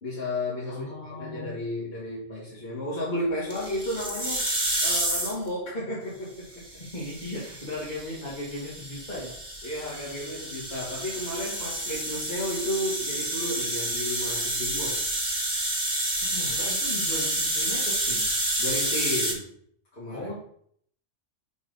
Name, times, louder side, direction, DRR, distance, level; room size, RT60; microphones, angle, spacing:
voice 1, 0.0-4.5 4.8-6.7 9.6-15.0 18.6-19.5 19.9-20.3, left 1 dB, 55° left, -8 dB, 2.3 m, -33 dB
voice 2, 0.7-1.5 6.9-9.4 16.2-18.3 20.1-20.3, left 1 dB, 40° left, -8 dB, 2.3 m, -37 dB
sound 1, 3.5-5.5 6.5-19.3, right 1 dB, 25° right, 2.0 m, -29 dB
6.2 x 4.2 x 5.4 m, 0.64 s
omnidirectional pair, 1.2 m